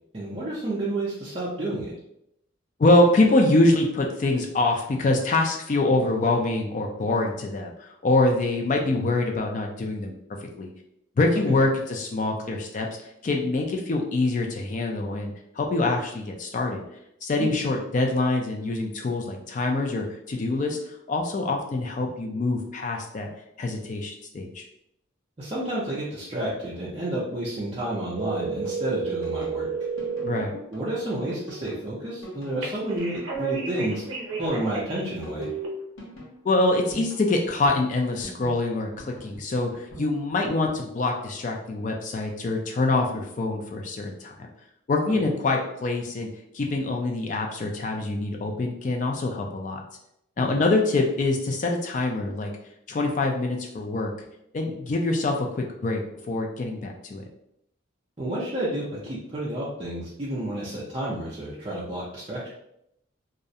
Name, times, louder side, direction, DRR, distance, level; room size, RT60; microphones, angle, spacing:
voice 1, 0.1-1.9 11.5-11.6 17.4-17.5 25.4-29.7 30.7-34.0 34.4-35.5 45.2-45.3 50.4-50.6 58.2-62.5, right 1 dB, 25° right, -9 dB, 0.4 m, -30 dB
voice 2, 2.8-10.1 10.4-10.7 11.2-12.9 13.2-16.8 17.2-20.8 21.1-23.3 23.6-24.6 30.2-30.5 36.4-44.5 44.9-46.3 46.5-49.8 50.4-52.5 52.9-54.1 54.5-56.0 56.3-57.2, left 2 dB, 40° left, 2 dB, 0.3 m, -25 dB
sound 1, 28.2-30.4 32.6-35.0 35.4-35.7, right 5 dB, 85° right, 0.6 m, -31 dB
sound 2, 29.2-40.8, equal, 85° left, 0.8 m, -43 dB
2.4 x 2.0 x 2.6 m, 0.78 s
head